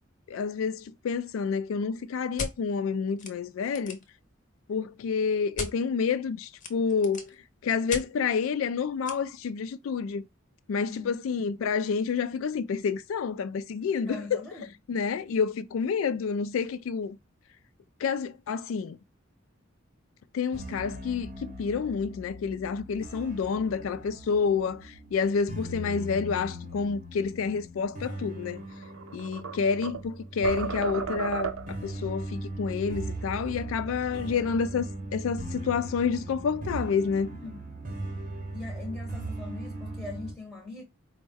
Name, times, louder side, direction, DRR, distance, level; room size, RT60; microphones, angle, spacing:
voice 1, 0.3-4.0 4.7-7.3 7.6-10.2 10.7-14.4 14.9-17.2 18.0-19.0 20.3-28.6 29.1-34.9 35.1-37.4, left 5 dB, 75° left, 0.3 m, -29 dB
sound 1, 2.4-2.5 3.2-3.3 3.6-4.1 5.6-5.7 6.6-7.3 7.9-8.1 9.1-9.2, left 3 dB, 40° left, 0.7 m, -35 dB
voice 2, 10.8-11.2 14.0-14.7 33.5-33.7 34.2-34.5 37.4-37.6 38.5-40.8, left 3 dB, ahead, 0.7 m, -41 dB
sound 2, 20.5-40.3, right 1 dB, 40° right, 0.7 m, -39 dB
sound 3, 28.7-30.1 30.4-31.9, right 7 dB, 80° right, 0.5 m, -34 dB
4.3 x 2.1 x 3.3 m
head